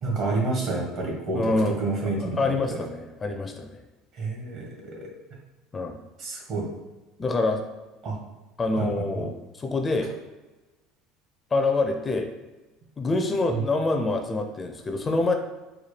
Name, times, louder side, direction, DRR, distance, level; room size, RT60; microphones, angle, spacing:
voice 1, 0.0-2.5 4.1-5.1 6.2-6.6 8.0-8.2 8.8-9.2 13.5-13.6, right 3 dB, 55° right, -2 dB, 1.3 m, -29 dB
voice 2, 1.3-1.7 2.2-3.8 5.7-6.0 7.2-7.6 8.6-10.1 11.5-12.3 13.0-15.3, left 3 dB, 25° left, 4 dB, 0.4 m, -26 dB
4.2 x 2.3 x 3.2 m, 1.2 s
supercardioid pair, 105°, 0 cm